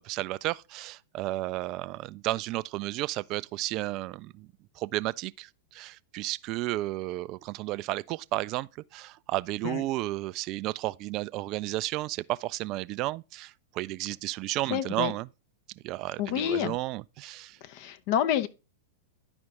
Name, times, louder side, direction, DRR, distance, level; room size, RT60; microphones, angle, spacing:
voice 1, 0.0-4.5 4.8-15.3 15.8-17.6, right 17 dB, 40° right, 0.4 m, -33 dB
voice 2, 14.7-15.1 16.2-16.8 17.6-18.5, left 10 dB, 45° left, 0.8 m, -28 dB
11.0 x 5.2 x 3.6 m
figure-of-eight pair, 100°, 0 cm